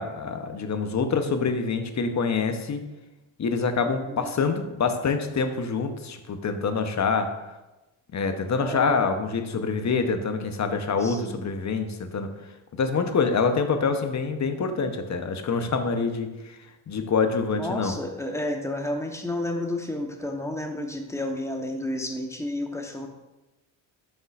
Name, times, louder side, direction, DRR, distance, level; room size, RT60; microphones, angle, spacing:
voice 1, 0.0-2.9 3.4-7.3 8.1-12.3 12.7-16.6 16.9-18.0, left 5 dB, 35° left, 7 dB, 0.8 m, -26 dB
voice 2, 3.9-4.3 8.6-9.0 11.0-11.4 17.6-23.1, left 1 dB, 5° left, 3 dB, 0.9 m, -31 dB
7.8 x 5.4 x 2.4 m, 1.1 s
cardioid pair, 70°, 47 cm